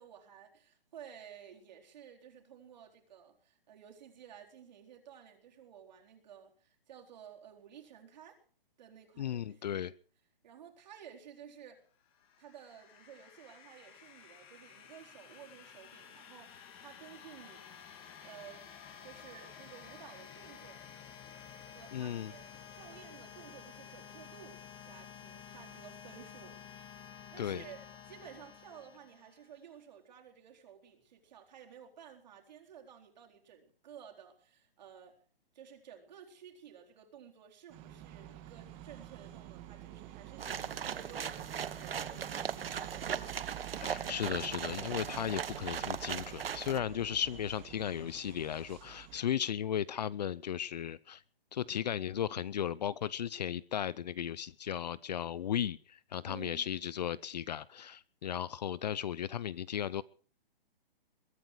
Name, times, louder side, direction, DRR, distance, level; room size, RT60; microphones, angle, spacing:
voice 1, 0.0-8.4 8.8-9.8 10.4-11.8 12.4-17.7 18.2-20.8 21.7-27.8 28.1-35.2 35.5-43.2 56.2-56.8, right 8 dB, 50° right, 4.2 m, -54 dB
voice 2, 9.2-9.9 21.9-22.3 27.4-27.6 43.8-51.2 51.5-60.0, left 9 dB, 45° left, 0.6 m, -36 dB
sound 1, 12.0-29.6, left 8 dB, 20° left, 2.5 m, -52 dB
sound 2, 37.7-49.2, right 13 dB, 20° right, 1.7 m, -48 dB
sound 3, 40.4-46.8, right 7 dB, 75° right, 1.2 m, -38 dB
22.5 x 9.3 x 6.3 m
hypercardioid pair, 155°, 29 cm